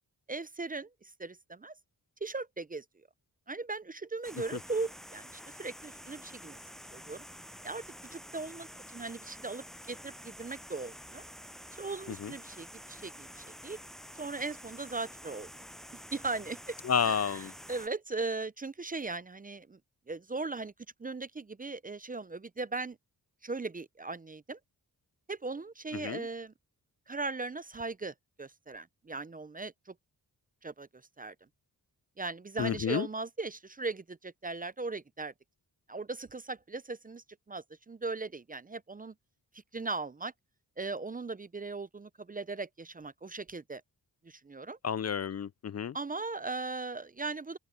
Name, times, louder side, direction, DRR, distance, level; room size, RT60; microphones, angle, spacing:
voice 1, 0.3-0.9 1.2-1.7 2.2-2.8 3.5-6.6 6.9-7.2 7.6-7.8 8.1-11.2 11.8-13.8 14.2-15.5 16.1-16.7 17.0-17.4 17.7-19.8 20.1-20.7 21.0-23.0 23.4-24.6 25.3-26.5 27.1-29.9 30.6-30.9 31.2-31.3 32.2-35.3 35.9-39.1 39.7-40.3 40.8-43.8 44.2-44.8 45.9-47.6, right 3 dB, 20° right, 0.5 m, -38 dB
sound 1, 4.2-17.9, equal, ahead, 7.7 m, -49 dB
voice 2, 16.8-17.5 25.9-26.3 32.6-33.1 44.8-46.0, left 7 dB, 40° left, 0.5 m, -31 dB
open air
cardioid pair, 70°, 39 cm